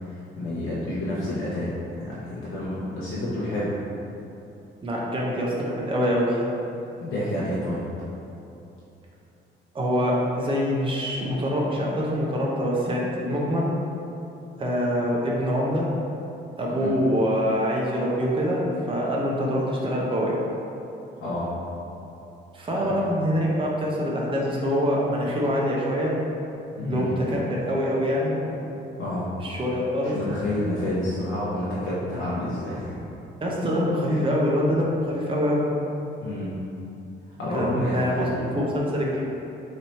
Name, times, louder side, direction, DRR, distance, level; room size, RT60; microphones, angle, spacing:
voice 1, 0.0-1.7 2.0-3.8 7.0-7.8 16.8-16.9 21.2-21.5 22.7-23.0 26.7-27.1 29.0-29.3 29.9-33.0 34.1-34.2 36.2-36.6 37.4-38.3, left 1 dB, 75° left, -9 dB, 0.8 m, -29 dB
voice 2, 4.8-6.4 9.7-13.7 14.6-15.9 16.6-20.4 22.5-26.1 26.9-28.4 29.4-30.1 33.4-35.6 37.5-39.2, equal, 25° right, -4 dB, 0.7 m, -25 dB
3.2 x 2.7 x 4.2 m, 2.9 s
cardioid pair, 90°, 20 cm